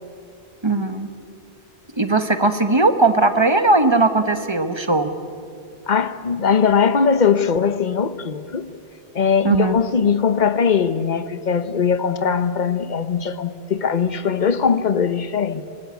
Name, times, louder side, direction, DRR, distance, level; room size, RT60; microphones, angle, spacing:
voice 1, 0.6-1.1 2.0-5.1 9.4-9.7, right 2 dB, 25° right, 1.2 m, -18 dB
voice 2, 5.9-8.7 9.1-15.6, left 6 dB, 45° left, 1.0 m, -20 dB
24.5 x 19.5 x 8.2 m
omnidirectional pair, 1.1 m